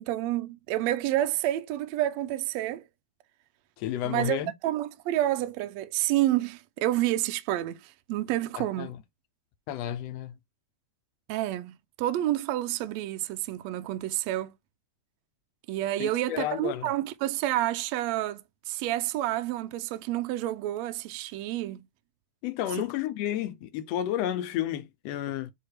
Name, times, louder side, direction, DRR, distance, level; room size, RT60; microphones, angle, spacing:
voice 1, 0.0-2.8 4.0-8.9 11.3-14.5 15.7-21.8, right 14 dB, 80° right, 1.6 m, -29 dB
voice 2, 3.8-4.5 8.6-9.0 9.7-10.3 16.0-16.9 22.4-25.5, left 12 dB, 80° left, 1.5 m, -31 dB
8.2 x 2.8 x 4.5 m
omnidirectional pair, 3.8 m